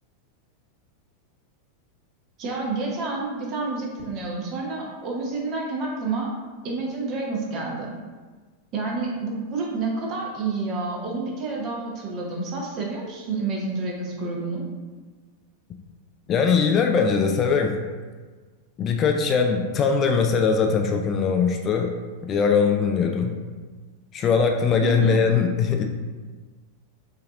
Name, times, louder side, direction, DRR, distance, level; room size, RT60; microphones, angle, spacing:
voice 1, 2.4-6.3 6.6-7.9 8.7-14.6 24.8-25.2, right 3 dB, 35° right, -2 dB, 1.0 m, -29 dB
voice 2, 16.3-17.8 18.8-21.9 22.2-23.4 24.1-25.8, left 5 dB, 30° left, 4 dB, 0.3 m, -21 dB
5.6 x 2.9 x 2.5 m, 1.4 s
figure-of-eight pair, 90°, 0 cm